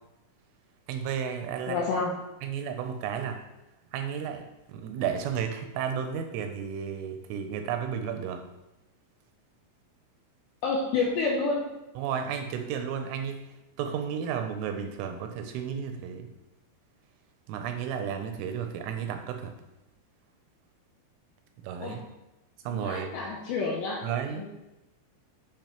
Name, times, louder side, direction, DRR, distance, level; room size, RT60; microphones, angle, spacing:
voice 1, 0.9-1.9 2.4-3.4 3.9-8.4 12.0-13.4 13.8-16.3 17.5-19.5 21.6-22.0 22.6-23.1 24.0-24.5, right 7 dB, 85° right, 6 dB, 3.1 m, -33 dB
voice 2, 1.7-2.2 10.6-11.6 21.8-22.0 22.7-24.5, left 4 dB, 85° left, -2 dB, 2.6 m, -29 dB
10.5 x 5.2 x 3.0 m, 0.96 s
omnidirectional pair, 5.9 m